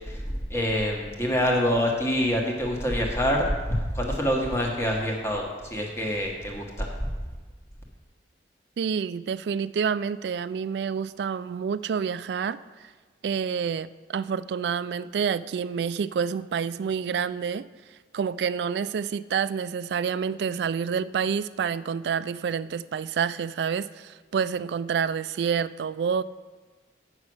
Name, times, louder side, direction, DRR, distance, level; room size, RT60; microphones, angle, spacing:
voice 1, 0.5-6.9, equal, 15° left, 0 dB, 1.4 m, -26 dB
voice 2, 8.8-12.6 13.2-17.6 18.1-26.2, right 6 dB, 65° right, 17 dB, 0.3 m, -28 dB
8.5 x 6.1 x 6.2 m, 1.4 s
head